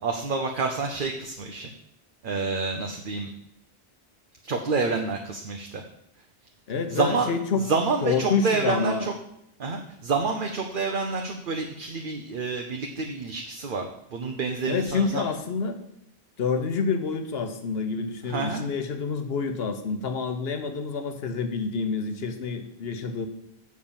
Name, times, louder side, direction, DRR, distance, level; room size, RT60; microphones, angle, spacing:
voice 1, 0.0-1.7 2.2-3.3 4.4-5.8 6.9-9.1 9.6-15.3 18.3-18.7, right 4 dB, 60° right, 3 dB, 0.9 m, -28 dB
voice 2, 6.7-7.7 8.0-9.1 14.6-15.8 16.4-23.3, left 5 dB, 75° left, 7 dB, 1.1 m, -28 dB
7.4 x 4.7 x 7.0 m, 0.74 s
omnidirectional pair, 1.0 m